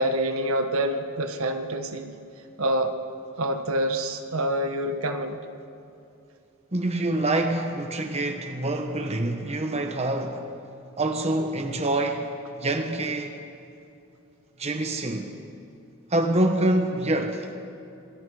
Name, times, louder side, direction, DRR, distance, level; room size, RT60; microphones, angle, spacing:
voice 1, 0.0-2.1 2.6-2.9 3.4-5.4, right 1 dB, 70° right, 1.5 m, -26 dB
voice 2, 6.7-10.5 11.0-13.4 14.6-15.3 16.1-17.6, right 1 dB, 30° right, 1.2 m, -26 dB
27.0 x 20.0 x 5.0 m
head